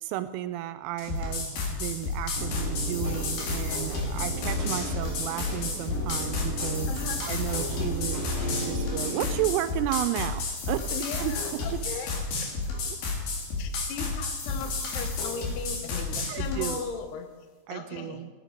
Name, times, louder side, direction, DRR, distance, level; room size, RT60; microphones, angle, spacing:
voice 1, 0.0-6.9 7.2-10.9 11.2-11.3 11.7-11.8 16.3-16.9 17.7-18.3, right 14 dB, 85° right, 10 dB, 2.9 m, -33 dB
sound 1, 1.0-16.8, left 3 dB, 55° left, 3.5 m, -32 dB
sound 2, 2.4-9.5, right 1 dB, 40° left, 6.9 m, -34 dB
voice 2, 6.9-7.3 10.9-12.1 12.4-12.5 13.6-17.3 17.7-18.3, left 7 dB, 75° left, 6 dB, 2.5 m, -38 dB
15.5 x 10.5 x 5.1 m, 1.3 s
omnidirectional pair, 5.9 m